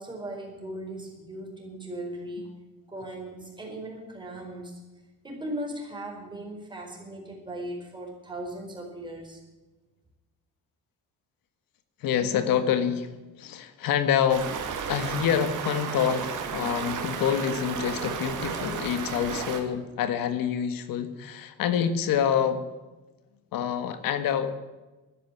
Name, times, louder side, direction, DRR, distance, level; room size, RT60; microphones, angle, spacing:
voice 1, 0.0-2.5 2.9-4.8 5.2-9.4, right 1 dB, 15° right, 0 dB, 4.9 m, -38 dB
voice 2, 12.0-14.5 14.9-22.7 23.5-24.5, left 8 dB, 90° left, 10 dB, 1.6 m, -27 dB
Stream, 14.3-19.6, right 6 dB, 65° right, 2.7 m, -33 dB
13.0 x 10.5 x 9.7 m, 1.1 s
cardioid pair, 145°, 33 cm